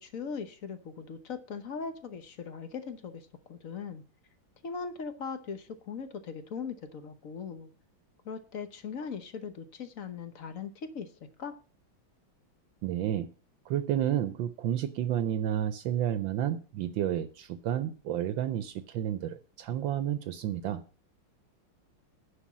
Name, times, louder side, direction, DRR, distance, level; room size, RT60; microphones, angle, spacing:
voice 1, 0.0-4.0 4.6-7.7 8.2-11.1 11.4-11.6, left 5 dB, 50° left, 10 dB, 1.1 m, -39 dB
voice 2, 12.8-13.3 13.7-20.8, right 11 dB, 75° right, 12 dB, 1.3 m, -31 dB
10.0 x 5.3 x 7.3 m, 0.37 s
omnidirectional pair, 2.2 m